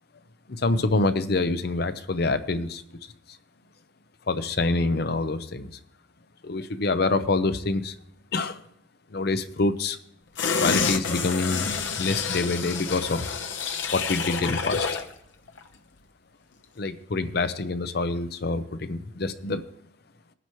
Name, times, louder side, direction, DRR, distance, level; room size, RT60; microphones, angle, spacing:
voice 1, 0.5-2.8 4.3-5.7 6.4-8.0 8.3-8.6 9.1-10.0 10.6-11.7 12.0-13.4 13.9-14.9 16.8-19.6, left 3 dB, 55° left, 10 dB, 0.6 m, -26 dB
sound 1, 10.4-15.1 15.5-15.6, left 5 dB, 70° left, 0.9 m, -28 dB
19.0 x 10.0 x 3.1 m, 0.73 s
head